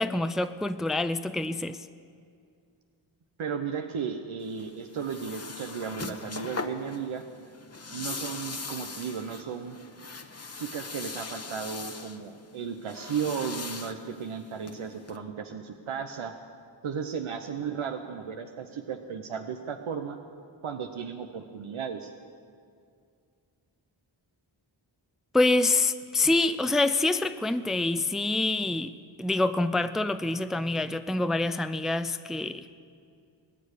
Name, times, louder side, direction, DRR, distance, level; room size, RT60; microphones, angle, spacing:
voice 1, 0.0-1.8 25.3-28.9 29.2-32.7, left 2 dB, ahead, 11 dB, 0.5 m, -26 dB
voice 2, 3.4-7.2 7.9-9.8 10.6-16.3 16.8-20.2 20.6-22.1, right 6 dB, 90° right, 5 dB, 0.8 m, -35 dB
sound 1, 4.4-15.2, left 4 dB, 30° left, 1.0 m, -40 dB
19.5 x 6.7 x 9.7 m, 2.2 s
cardioid pair, 40°, 47 cm